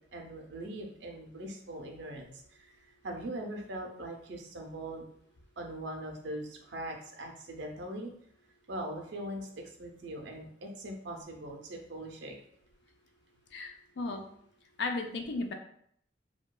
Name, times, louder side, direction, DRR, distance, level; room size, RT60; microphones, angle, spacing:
voice 1, 0.1-2.7 3.0-5.1 5.6-8.1 8.7-12.4, right 1 dB, 75° right, 2 dB, 0.5 m, -41 dB
voice 2, 13.5-14.2 14.8-15.5, left 3 dB, 70° left, 4 dB, 0.4 m, -35 dB
2.7 x 2.2 x 2.2 m, 0.67 s
head